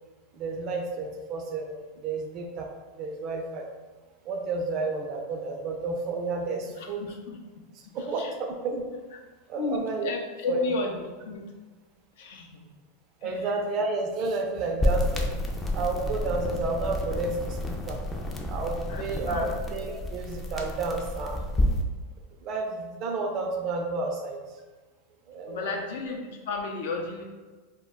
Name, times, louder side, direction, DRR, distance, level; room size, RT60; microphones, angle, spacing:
voice 1, 0.3-3.7 4.2-7.1 7.8-8.9 9.5-10.1 10.5-10.7 13.2-15.3 15.7-18.0 18.5-21.4 22.4-24.4 25.3-25.8, right 3 dB, 45° right, 2 dB, 0.4 m, -31 dB
voice 2, 6.8-7.4 8.2-8.3 9.6-11.5 12.2-12.6 13.2-13.3 18.9-19.5 25.5-27.2, left 4 dB, 70° left, 1 dB, 0.5 m, -33 dB
sound 1, 14.8-21.8, left 1 dB, 15° left, 0.4 m, -30 dB
2.2 x 2.1 x 3.5 m, 1.3 s
hypercardioid pair, 110°, 0 cm